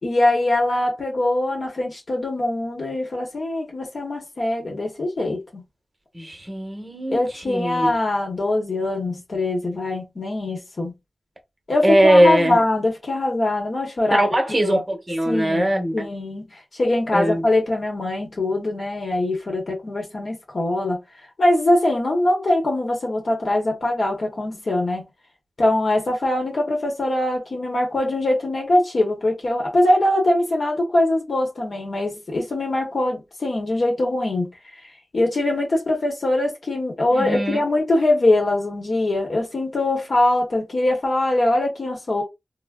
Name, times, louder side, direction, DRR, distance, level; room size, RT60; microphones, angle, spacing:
voice 1, 0.0-5.6 7.1-10.9 11.7-14.3 14.6-14.8 15.3-21.0 21.4-25.0 25.6-34.5 35.1-42.2, left 1 dB, 60° left, 0.9 m, -22 dB
voice 2, 6.1-7.9 11.8-12.6 14.2-16.1 17.1-17.5 37.1-37.6, right 1 dB, 25° right, 0.9 m, -20 dB
3.5 x 2.0 x 2.2 m
wide cardioid pair, 85°, 0 cm